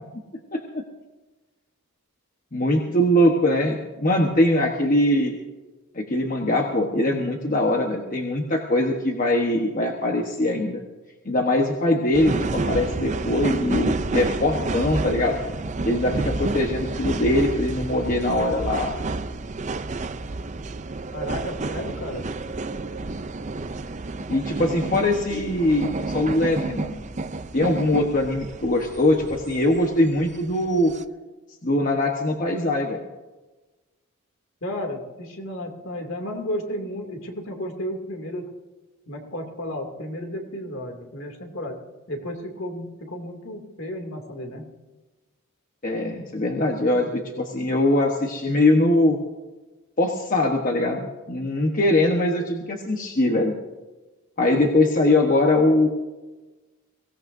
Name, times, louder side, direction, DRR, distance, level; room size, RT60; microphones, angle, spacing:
voice 1, 0.5-0.8 2.5-5.3 5.9-10.8 11.2-15.4 15.8-18.9 24.3-27.0 27.5-30.9 31.6-33.0 45.8-49.2 50.0-53.5 54.4-55.9, left 1 dB, 35° left, 1 dB, 1.2 m, -22 dB
sound 1, 12.1-31.0, right 3 dB, 35° right, 0.5 m, -30 dB
voice 2, 21.1-22.2 34.6-38.5 39.1-41.8 42.1-44.6, equal, 60° left, 2 dB, 2.7 m, -33 dB
23.0 x 17.5 x 2.7 m, 1.2 s
head